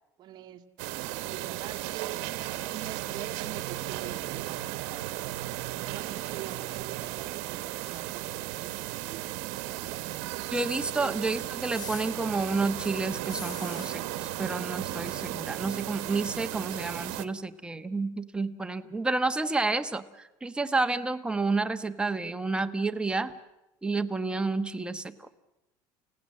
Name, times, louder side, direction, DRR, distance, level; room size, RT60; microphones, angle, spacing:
voice 1, 0.2-0.6 1.0-2.3 2.7-5.4 5.8-10.1 11.0-11.2, right 11 dB, 45° right, 6 dB, 1.8 m, -45 dB
sound 1, 0.8-17.3, right 15 dB, 75° right, 1.2 m, -35 dB
voice 2, 10.5-23.3 23.8-25.3, right 3 dB, 10° right, 8 dB, 1.2 m, -30 dB
sound 2, 11.6-12.1 13.2-13.9, left 6 dB, 45° left, 4.3 m, -42 dB
29.5 x 16.5 x 7.6 m, 0.96 s
supercardioid pair, 120°, 10 cm